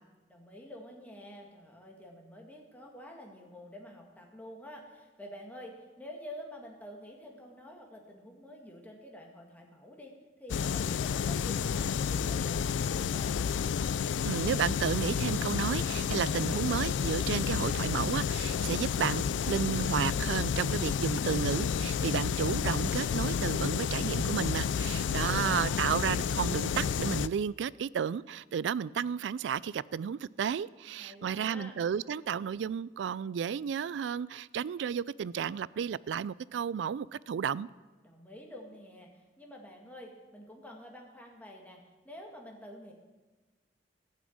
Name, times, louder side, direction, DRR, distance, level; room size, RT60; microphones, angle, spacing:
voice 1, 0.3-10.1 10.4-13.4 25.1-25.9 31.0-31.8 38.0-42.9, left 1 dB, 10° left, 0 dB, 2.0 m, -48 dB
sound 1, 10.5-27.3, left 7 dB, 80° left, 0.4 m, -30 dB
voice 2, 14.2-37.7, right 7 dB, 75° right, 21 dB, 0.3 m, -32 dB
14.5 x 6.2 x 8.6 m, 1.2 s
head